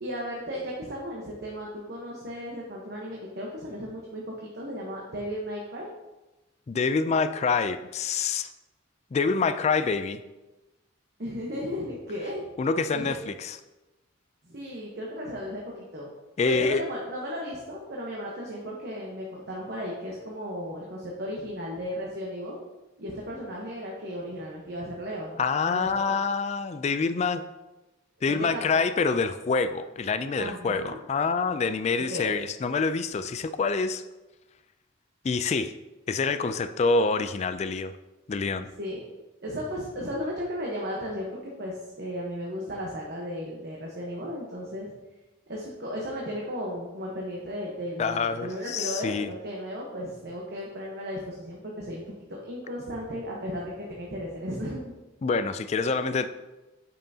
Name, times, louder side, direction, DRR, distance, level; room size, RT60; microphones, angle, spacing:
voice 1, 0.0-5.9 11.2-12.4 12.9-13.1 14.4-16.1 16.5-22.6 23.0-25.9 28.3-28.6 30.4-31.0 32.1-32.3 38.8-39.0 39.4-44.9 45.5-52.0 52.3-54.9, equal, 55° right, -3 dB, 1.1 m, -35 dB
voice 2, 6.7-8.5 9.1-10.2 12.6-13.6 16.4-16.8 25.4-27.4 28.2-34.0 35.2-35.7 36.1-37.9 38.3-38.7 48.0-49.3 55.2-56.3, left 4 dB, 35° left, 11 dB, 0.3 m, -26 dB
8.9 x 5.6 x 2.8 m, 1.1 s
head